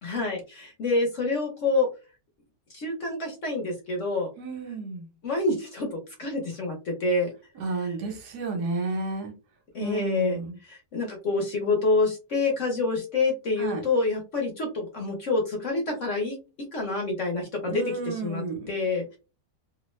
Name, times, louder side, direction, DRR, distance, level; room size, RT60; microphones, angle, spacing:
voice 1, 0.0-1.9 2.7-4.3 5.2-7.3 7.8-8.0 9.7-19.2, left 3 dB, 55° left, 0 dB, 1.0 m, -27 dB
voice 2, 4.4-5.1 7.6-9.3 9.8-10.5 13.6-13.8 17.6-18.7, right 3 dB, 70° right, 3 dB, 1.3 m, -31 dB
2.9 x 2.1 x 3.1 m, 0.31 s
omnidirectional pair, 1.9 m